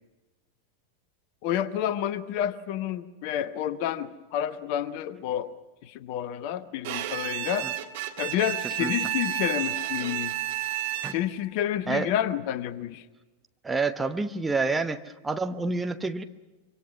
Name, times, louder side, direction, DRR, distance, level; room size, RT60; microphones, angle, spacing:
voice 1, 1.4-5.5 5.8-7.7 8.2-10.3 11.1-13.0, left 11 dB, 45° left, 14 dB, 1.1 m, -29 dB
Bowed string instrument, 6.8-11.4, right 14 dB, 50° right, 1.7 m, -31 dB
voice 2, 13.6-16.2, right 3 dB, 10° right, 7 dB, 1.0 m, -28 dB
25.5 x 24.5 x 6.0 m, 1.2 s
figure-of-eight pair, 90°, 0 cm